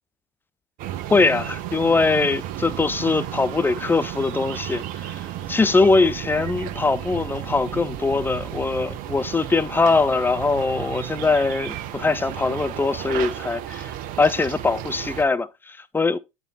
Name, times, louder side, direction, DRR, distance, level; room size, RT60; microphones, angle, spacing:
sound 1, 0.8-15.3, right 12 dB, 55° right, 0.9 m, -33 dB
voice 1, 1.1-5.2 5.5-13.9 14.2-16.2, left 3 dB, 10° left, 0.5 m, -22 dB
8.9 x 6.9 x 2.3 m
hypercardioid pair, 70°, 17 cm